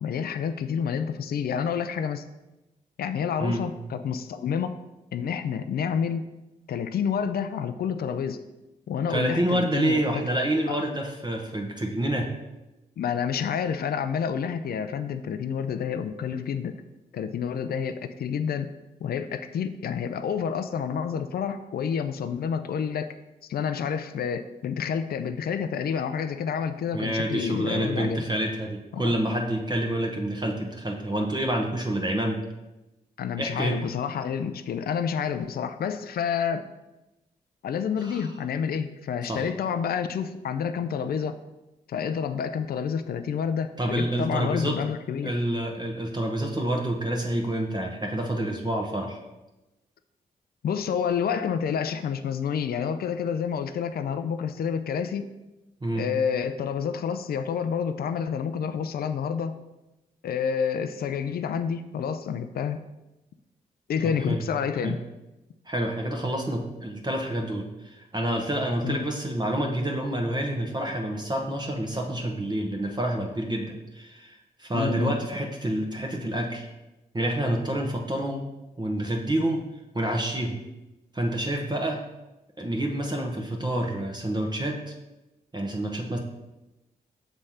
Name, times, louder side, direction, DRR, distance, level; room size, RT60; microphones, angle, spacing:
voice 1, 0.0-2.2 3.0-4.8 5.1-6.3 6.7-8.4 8.9-10.2 10.7-10.8 13.0-16.8 17.1-18.7 19.0-23.1 23.5-28.3 28.9-29.1 33.2-36.6 37.6-41.4 41.9-45.3 50.6-55.3 56.0-59.6 60.2-62.8 63.9-65.0 68.8-69.0 74.7-75.1, left 7 dB, 60° left, 10 dB, 0.4 m, -29 dB
voice 2, 9.1-12.3 26.9-32.4 33.4-33.8 38.0-38.3 39.3-39.5 43.8-44.8 45.2-49.2 55.8-56.1 64.0-64.4 64.8-65.0 65.7-76.7 77.1-78.4 78.8-79.6 79.9-80.6 81.1-82.0 82.6-84.9 85.5-86.2, right 1 dB, 25° right, 1 dB, 1.0 m, -28 dB
6.1 x 3.3 x 5.6 m, 1.0 s
supercardioid pair, 45°, 17 cm